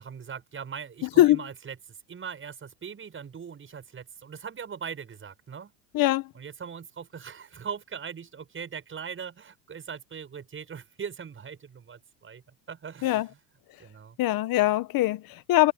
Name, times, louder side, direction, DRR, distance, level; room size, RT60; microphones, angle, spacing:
voice 1, 0.0-5.7 6.3-12.4 12.7-13.2 13.8-14.2, right 7 dB, 25° right, 7.6 m, -40 dB
voice 2, 1.0-1.4 5.9-6.3 13.0-13.3 14.2-15.7, left 15 dB, 45° left, 1.5 m, -22 dB
supercardioid pair, 120°, 48 cm